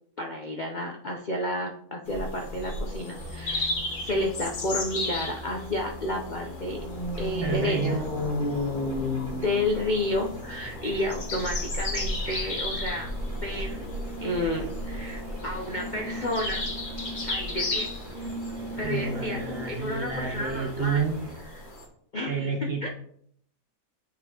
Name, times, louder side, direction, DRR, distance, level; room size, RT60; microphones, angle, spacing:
voice 1, 0.2-3.7 4.0-6.9 7.2-8.0 9.3-13.1 13.4-13.8 14.2-16.7 17.2-17.9 18.8-19.4 19.7-21.0 21.4-21.7 22.1-22.9, left 1 dB, 85° left, 1 dB, 0.4 m, -31 dB
sound 1, 2.1-21.9, left 2 dB, 40° left, 0.8 m, -33 dB
sound 2, 3.2-21.4, right 1 dB, 40° right, 2.5 m, -46 dB
voice 2, 7.4-8.0 18.8-21.2 22.3-22.9, right 6 dB, 55° right, 2 dB, 0.7 m, -29 dB
9.4 x 4.1 x 2.9 m, 0.66 s
omnidirectional pair, 1.8 m